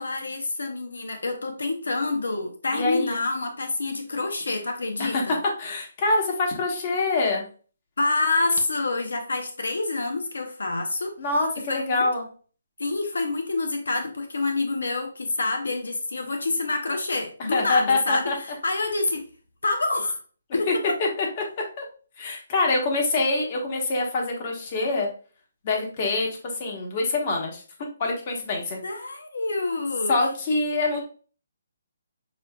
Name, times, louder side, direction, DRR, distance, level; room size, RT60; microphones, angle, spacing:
voice 1, 0.0-5.4 8.0-11.1 11.6-12.1 12.8-19.3 19.6-20.2 20.5-20.7 28.8-30.1, left 3 dB, 90° left, 5 dB, 0.8 m, -27 dB
voice 2, 2.7-3.2 5.0-7.4 11.2-12.3 17.5-18.3 20.7-20.8 21.0-21.1 21.4-21.5 21.8-21.9 22.2-25.1 25.6-27.6 28.0-28.8 30.1-31.0, left 3 dB, 35° left, 1 dB, 1.2 m, -25 dB
6.2 x 2.6 x 2.3 m, 0.40 s
hypercardioid pair, 160°, 0 cm